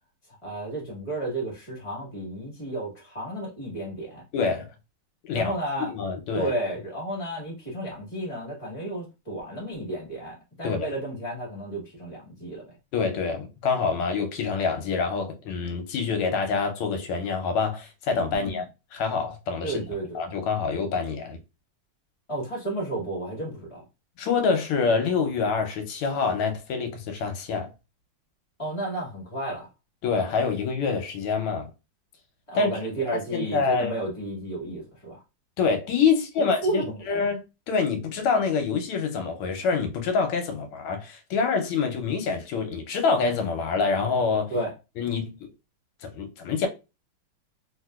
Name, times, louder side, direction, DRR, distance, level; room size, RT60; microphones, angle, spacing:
voice 1, 0.4-4.2 5.3-5.9 6.3-12.6 18.3-18.6 19.6-20.2 22.3-23.8 28.6-29.7 32.5-35.2 36.4-37.2 44.5-44.7, right 1 dB, 20° left, 1.0 m, -32 dB
voice 2, 4.3-4.7 5.2-5.5 5.8-6.5 10.6-10.9 12.9-18.6 18.9-19.8 20.1-21.4 24.2-27.7 30.0-31.7 32.5-32.7 33.3-33.9 35.6-36.8 37.1-37.4 37.7-44.5 45.0-45.5 46.0-46.7, left 5 dB, 85° left, 1.6 m, -26 dB
3.3 x 2.8 x 2.3 m
omnidirectional pair, 2.4 m